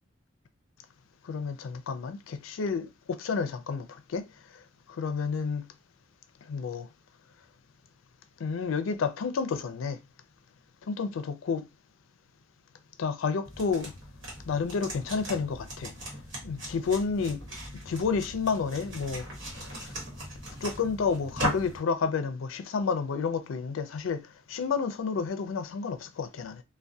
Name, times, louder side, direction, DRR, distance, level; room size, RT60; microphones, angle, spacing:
voice 1, 1.2-4.3 4.9-5.7 6.5-6.9 8.4-10.0 10.9-11.7 13.0-13.9 14.5-15.9 16.4-17.4 17.9-19.3 19.5-19.9 20.6-26.6, left 5 dB, 90° left, 0.4 m, -30 dB
sound 1, 13.4-21.8, right 1 dB, 70° right, 1.2 m, -38 dB
2.3 x 2.1 x 2.6 m
head